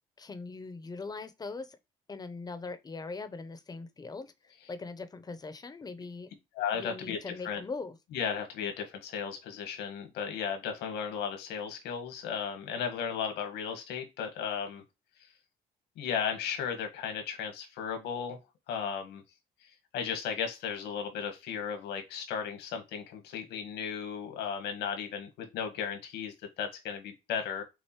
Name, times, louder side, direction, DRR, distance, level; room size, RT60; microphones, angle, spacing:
voice 1, 0.2-1.8 2.1-6.3 6.7-8.0, left 3 dB, 25° left, 0.8 m, -41 dB
voice 2, 6.6-7.6 8.1-14.8 16.0-18.4 18.7-19.2 19.9-27.6, left 7 dB, 85° left, 1.6 m, -35 dB
6.5 x 2.6 x 3.0 m
cardioid pair, 110°, 17 cm